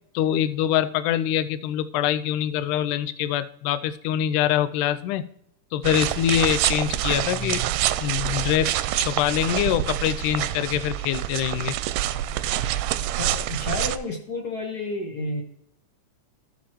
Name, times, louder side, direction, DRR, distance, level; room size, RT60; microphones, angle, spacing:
voice 1, 0.2-5.3 5.7-7.6 8.0-11.7, left 11 dB, 85° left, 14 dB, 2.0 m, -24 dB
sound 1, 5.8-14.0, right 13 dB, 85° right, 2.0 m, -26 dB
voice 2, 7.3-7.7 13.2-15.4, left 2 dB, 50° left, 2 dB, 1.1 m, -31 dB
14.5 x 7.0 x 3.0 m, 0.73 s
omnidirectional pair, 3.6 m